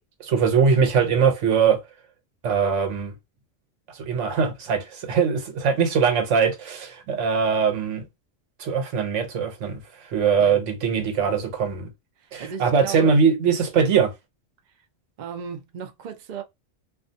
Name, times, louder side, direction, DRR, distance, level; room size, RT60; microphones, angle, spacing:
voice 1, 0.2-1.8 2.4-3.1 3.9-8.0 8.6-11.9 12.3-14.1, right 6 dB, 80° right, 1.0 m, -21 dB
voice 2, 12.2-13.1 15.2-16.4, right 7 dB, 60° right, 0.5 m, -35 dB
2.4 x 2.3 x 2.6 m
omnidirectional pair, 1.3 m